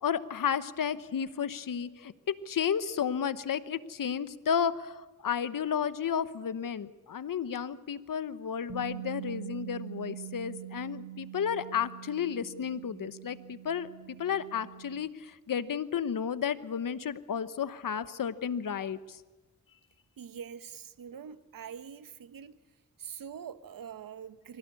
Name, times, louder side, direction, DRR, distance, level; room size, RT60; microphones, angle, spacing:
voice 1, 0.0-13.9 14.2-19.2, left 8 dB, 80° left, 1.1 m, -32 dB
Bass guitar, 8.7-14.9, right 12 dB, 60° right, 6.4 m, -44 dB
voice 2, 20.2-22.6 23.0-24.6, right 7 dB, 90° right, 1.0 m, -44 dB
24.5 x 17.0 x 8.4 m
cardioid pair, 60°, 33 cm